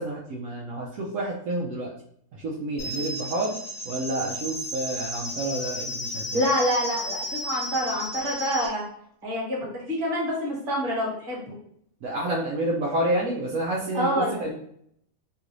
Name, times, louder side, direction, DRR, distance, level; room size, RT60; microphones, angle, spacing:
voice 1, 0.0-1.9 2.4-3.5 3.8-6.4 12.0-14.1 14.4-14.5, right 1 dB, 70° right, -4 dB, 1.0 m, -29 dB
sound 1, 2.8-8.7, left 1 dB, 45° left, 0.9 m, -33 dB
voice 2, 6.3-8.9 9.2-11.6 13.9-14.4, equal, 40° right, -4 dB, 1.4 m, -27 dB
3.1 x 2.5 x 3.0 m, 0.68 s
omnidirectional pair, 1.5 m